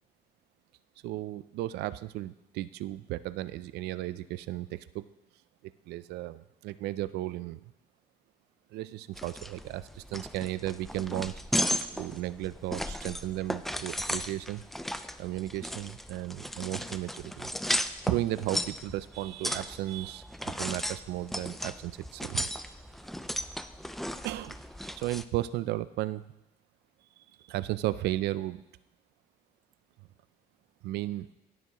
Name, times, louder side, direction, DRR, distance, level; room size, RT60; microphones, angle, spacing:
voice 1, 1.0-5.0 5.6-7.6 8.7-11.3 11.9-14.6 15.2-17.5 18.1-22.5 24.2-26.2 27.5-28.6 30.8-31.3, right 15 dB, 80° right, 15 dB, 0.4 m, -34 dB
sound 1, 9.1-25.2, equal, ahead, 0.4 m, -35 dB
16.5 x 7.0 x 3.0 m, 0.86 s
cardioid pair, 110°, 17 cm